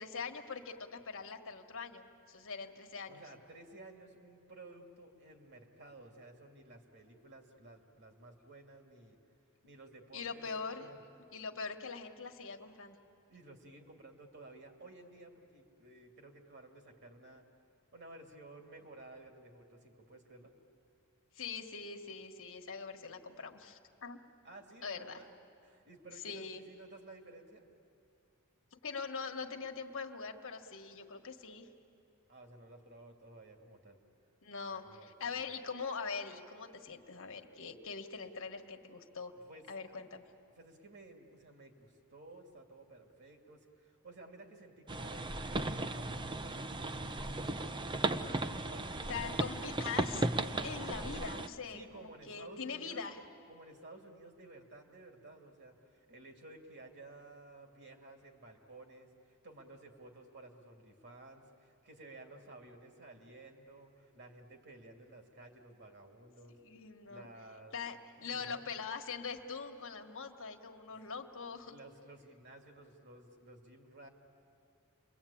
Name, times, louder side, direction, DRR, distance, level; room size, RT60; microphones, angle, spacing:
voice 1, 0.0-3.2 10.1-13.0 21.3-24.2 24.8-25.2 26.2-26.6 28.7-31.7 34.4-39.3 39.7-40.2 49.1-50.3 50.6-53.2 66.6-67.3 67.7-71.7, left 5 dB, 60° left, 5 dB, 1.5 m, -43 dB
voice 2, 3.1-9.2 9.6-11.0 13.3-17.4 17.9-20.5 24.4-27.7 32.3-34.0 34.6-35.5 39.4-39.7 40.5-47.8 48.4-49.2 51.7-53.1 53.5-66.6 67.1-67.8 68.2-68.6 70.9-71.0 71.5-74.1, right 2 dB, 50° right, 3 dB, 2.8 m, -55 dB
sound 1, 44.9-51.5, right 2 dB, 20° right, 0.7 m, -36 dB
30.0 x 23.0 x 8.6 m, 2.5 s
head